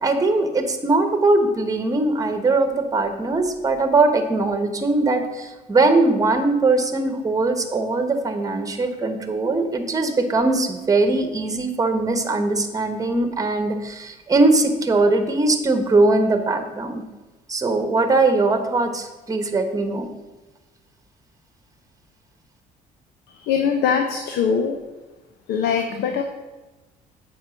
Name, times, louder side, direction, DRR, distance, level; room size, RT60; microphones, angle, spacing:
voice 1, 0.0-17.0 17.5-20.1, right 3 dB, 20° right, 7 dB, 1.2 m, -20 dB
voice 2, 23.3-24.8 25.5-26.2, left 6 dB, 80° left, 5 dB, 0.8 m, -22 dB
8.1 x 4.9 x 6.3 m, 1.1 s
cardioid pair, 110°, 17 cm